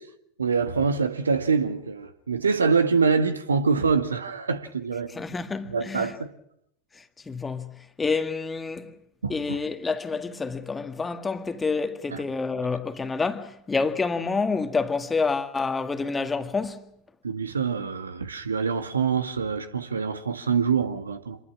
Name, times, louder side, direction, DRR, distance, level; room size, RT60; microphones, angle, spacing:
voice 1, 0.4-5.2 5.7-6.3 9.2-9.6 12.1-12.2 17.2-21.4, right 5 dB, 70° right, 1.9 m, -25 dB
voice 2, 5.2-6.1 7.0-7.7 8.0-8.9 9.3-16.9, left 4 dB, 15° left, 1.9 m, -28 dB
27.0 x 21.5 x 6.1 m
figure-of-eight pair, 90°, 0 cm